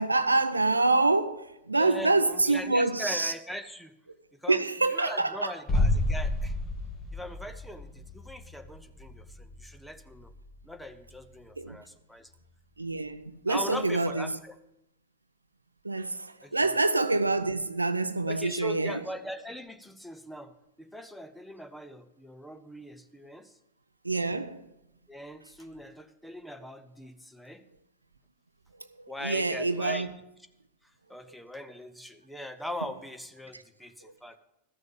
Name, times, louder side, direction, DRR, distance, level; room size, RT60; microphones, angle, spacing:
voice 1, 0.0-3.3 4.5-5.5 11.6-11.8 12.8-14.4 15.8-19.0 24.0-24.7 29.2-30.1 33.5-33.6, right 3 dB, 80° right, 0.5 m, -26 dB
voice 2, 1.7-3.9 4.4-4.6 4.9-6.5 7.1-10.3 10.6-12.3 13.5-14.5 16.4-16.7 18.3-20.5 20.8-23.5 25.1-27.6 29.1-30.1 31.1-34.4, equal, ahead, 0.8 m, -40 dB
sound 1, 5.7-11.4 11.7-11.8, left 1 dB, 20° left, 2.2 m, -31 dB
13.5 x 6.4 x 7.0 m
figure-of-eight pair, 90°, 0 cm